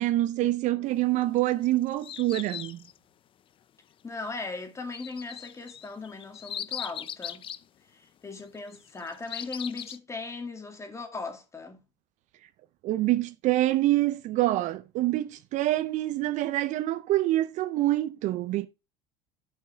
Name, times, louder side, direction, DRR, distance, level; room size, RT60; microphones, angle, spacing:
voice 1, 0.0-2.8 12.8-18.7, right 16 dB, 55° right, 0.5 m, -26 dB
sound 1, 1.4-3.0 4.9-7.6 8.8-10.0, left 10 dB, 35° left, 0.5 m, -39 dB
voice 2, 4.0-7.5 7.9-11.8, left 3 dB, 20° left, 2.0 m, -38 dB
9.9 x 5.6 x 3.5 m
supercardioid pair, 100°, 15 cm